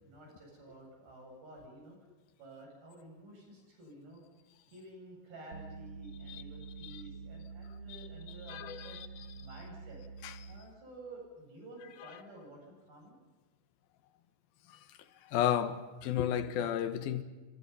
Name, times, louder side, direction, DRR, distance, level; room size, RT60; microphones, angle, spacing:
voice 1, 0.0-2.0 2.4-4.2 4.7-9.0 9.4-10.0 10.5-13.2, right 1 dB, 80° right, 10.0 m, -52 dB
sound 1, 5.5-10.8, right 5 dB, 55° right, 2.0 m, -47 dB
voice 2, 8.5-9.1 10.2-10.3 14.7-14.8 15.2-17.2, left 10 dB, 85° left, 3.1 m, -33 dB
27.0 x 25.0 x 5.7 m
omnidirectional pair, 4.1 m